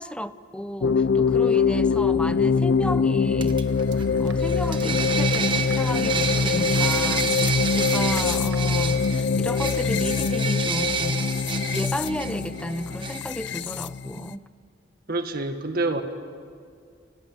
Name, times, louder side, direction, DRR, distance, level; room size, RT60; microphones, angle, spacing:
voice 1, 0.0-3.6 4.2-11.3 11.7-14.5, left 1 dB, 5° left, 0.6 m, -33 dB
sound 1, 0.8-14.3, left 5 dB, 60° left, 0.5 m, -23 dB
sound 2, 3.4-4.0 4.4-13.3, right 6 dB, 25° right, 1.3 m, -30 dB
sound 3, 3.7-9.1, right 3 dB, 70° right, 1.2 m, -42 dB
voice 2, 15.1-16.0, right 2 dB, 50° right, 1.8 m, -26 dB
30.0 x 18.0 x 8.6 m
head